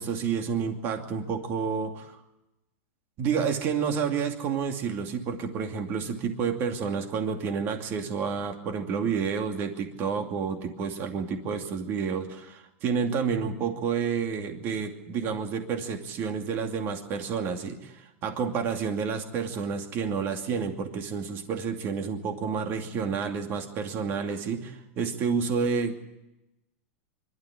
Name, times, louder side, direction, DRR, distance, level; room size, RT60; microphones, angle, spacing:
voice 1, 0.0-2.2 3.2-25.9, right 6 dB, 30° right, 5 dB, 2.6 m, -30 dB
25.0 x 12.5 x 10.0 m, 0.94 s
supercardioid pair, 165°, 7 cm